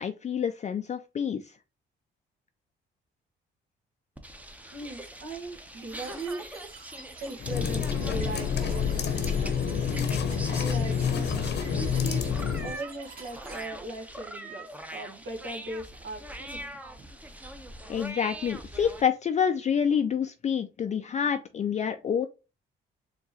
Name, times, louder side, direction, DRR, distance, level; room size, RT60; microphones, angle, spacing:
voice 1, 0.0-1.5 17.9-22.3, left 7 dB, 35° left, 0.4 m, -28 dB
sound 1, 4.2-19.0, right 1 dB, 5° right, 0.7 m, -43 dB
voice 2, 4.7-6.5 7.2-9.9 10.5-11.3 11.7-12.3 12.6-17.1, right 2 dB, 70° right, 1.3 m, -39 dB
sound 2, 5.9-13.7, right 4 dB, 50° right, 1.5 m, -49 dB
sound 3, 7.4-12.8, left 6 dB, 60° left, 0.8 m, -28 dB
4.5 x 2.9 x 2.8 m
cardioid pair, 90°, 20 cm